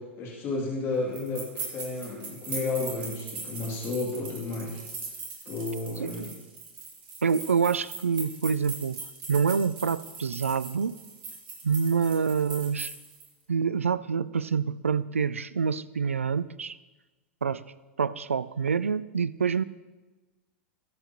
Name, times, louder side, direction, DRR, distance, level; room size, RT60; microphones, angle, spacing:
voice 1, 0.0-4.8 5.4-6.3, left 3 dB, 35° left, -4 dB, 2.6 m, -32 dB
sound 1, 1.1-13.3, right 4 dB, 55° right, 3.0 m, -40 dB
voice 2, 7.2-9.0 9.3-11.0 11.6-12.9 13.5-16.8 17.4-17.6 18.0-19.6, right 6 dB, 80° right, 18 dB, 0.4 m, -26 dB
20.0 x 7.8 x 3.0 m, 1.2 s
figure-of-eight pair, 95°, 7 cm